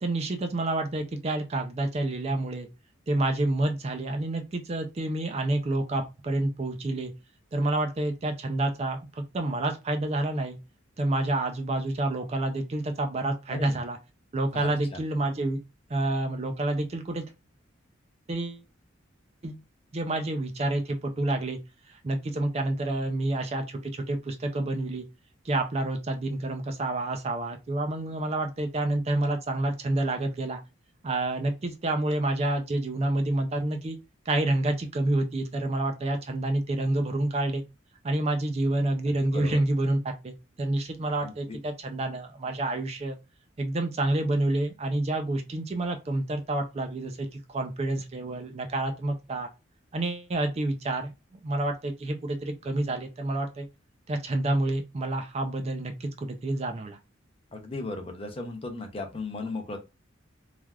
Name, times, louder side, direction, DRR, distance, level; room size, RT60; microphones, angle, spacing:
voice 1, 0.0-2.7 3.1-7.1 7.5-10.6 11.0-14.0 14.3-15.6 15.9-17.3 18.3-18.6 19.4-19.6 19.9-21.6 21.9-25.1 25.4-30.6 31.0-34.0 34.3-37.6 38.0-43.2 43.6-49.5 49.9-53.7 54.1-57.0, right 2 dB, 30° right, 0.4 m, -28 dB
voice 2, 13.5-13.8 14.5-15.0 39.1-39.6 41.2-41.6 57.5-59.8, left 3 dB, 30° left, 0.6 m, -36 dB
3.2 x 2.4 x 2.2 m
head